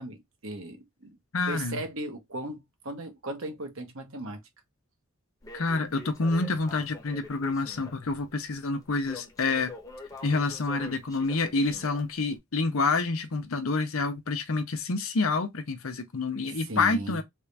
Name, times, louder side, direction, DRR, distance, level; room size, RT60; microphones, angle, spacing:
voice 1, 0.0-1.2 1.5-4.4 16.5-17.2, right 1 dB, 70° right, 1.1 m, -37 dB
voice 2, 1.3-1.8 5.5-9.7 10.2-17.2, left 3 dB, 75° left, 0.7 m, -28 dB
Crackle, 5.4-12.4, left 3 dB, 15° left, 0.9 m, -46 dB
3.6 x 2.5 x 3.3 m
head